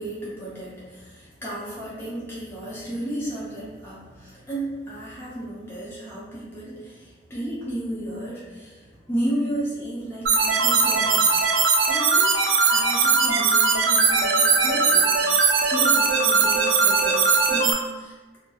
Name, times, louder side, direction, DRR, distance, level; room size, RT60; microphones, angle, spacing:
voice 1, 0.0-11.4 11.9-18.4, right 1 dB, 10° left, -9 dB, 0.6 m, -33 dB
sound 1, 10.3-17.7, right 5 dB, 90° right, 0.3 m, -20 dB
2.3 x 2.0 x 2.8 m, 1.3 s
head